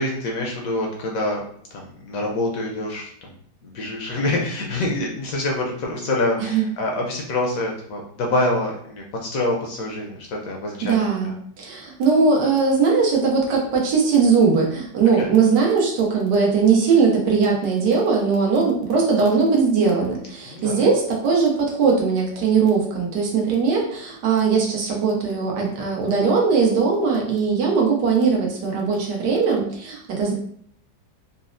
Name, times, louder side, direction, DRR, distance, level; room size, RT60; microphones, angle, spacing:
voice 1, 0.0-1.4 1.7-3.4 3.6-10.9 11.2-11.3 15.2-15.3 20.5-20.8, left 2 dB, 70° left, 0 dB, 0.8 m, -26 dB
voice 2, 10.8-30.3, right 5 dB, 90° right, -1 dB, 1.4 m, -20 dB
4.0 x 2.0 x 2.5 m, 0.64 s
omnidirectional pair, 1.8 m